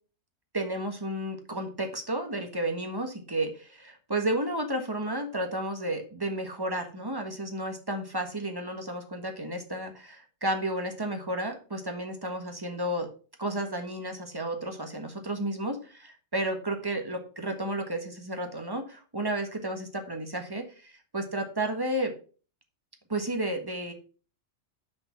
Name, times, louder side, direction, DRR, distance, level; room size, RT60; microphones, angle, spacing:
voice 1, 0.5-13.1 13.4-22.1 23.1-23.9, right 1 dB, 20° right, 5 dB, 1.3 m, -32 dB
6.3 x 5.2 x 5.7 m, 0.38 s
omnidirectional pair, 1.2 m